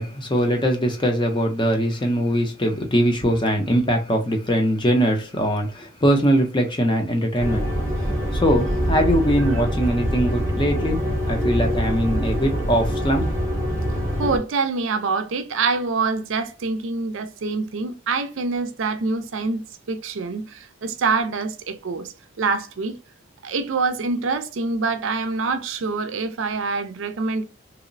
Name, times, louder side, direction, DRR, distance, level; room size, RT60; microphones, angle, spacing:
voice 1, 0.0-7.7 8.4-11.0 11.3-13.3, equal, 20° left, 0.5 m, -21 dB
sound 1, 7.4-14.4, equal, 15° right, 0.8 m, -24 dB
voice 2, 14.2-22.1 22.4-22.9 23.4-27.4, right 4 dB, 60° right, 0.4 m, -25 dB
2.9 x 2.0 x 2.5 m
head